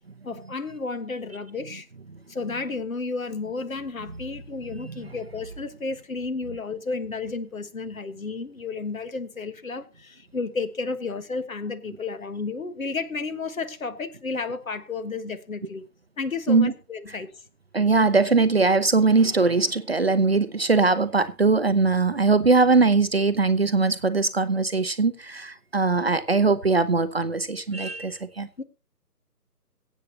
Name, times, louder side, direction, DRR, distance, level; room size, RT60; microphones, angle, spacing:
voice 1, 0.2-1.9 2.3-15.8 16.2-17.4 28.6-28.7, left 4 dB, 55° left, 1.5 m, -32 dB
voice 2, 17.7-28.5, right 4 dB, 40° right, 0.7 m, -21 dB
23.0 x 8.4 x 2.9 m
figure-of-eight pair, 155°, 48 cm